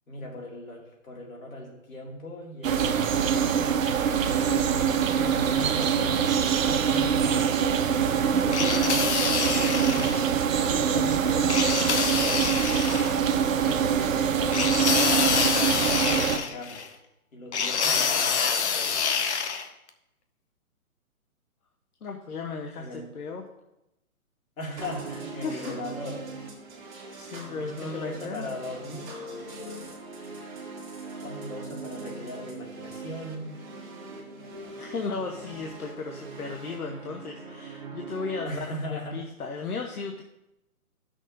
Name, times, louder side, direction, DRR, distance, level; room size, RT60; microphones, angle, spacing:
voice 1, 0.1-3.8 4.3-6.3 6.6-7.6 8.4-9.3 9.6-10.5 13.6-16.8 17.3-19.1 22.8-23.1 24.6-26.2 27.3-29.9 31.2-33.5 38.4-39.2, left 1 dB, 65° left, -1 dB, 2.4 m, -39 dB
sound 1, 2.6-16.4, right 7 dB, 60° right, 0.7 m, -24 dB
voice 2, 8.0-8.4 9.4-9.8 10.7-11.9 22.0-23.4 25.4-25.8 27.1-28.5 34.7-40.2, left 4 dB, 85° left, 2 dB, 1.0 m, -36 dB
sound 2, 8.5-10.2 11.5-13.1 14.5-16.9 17.5-19.7, left 6 dB, 50° left, 0.8 m, -26 dB
sound 3, 24.8-38.4, right 3 dB, 35° right, 1.8 m, -41 dB
13.5 x 6.3 x 2.6 m, 0.89 s
hypercardioid pair, 145°, 44 cm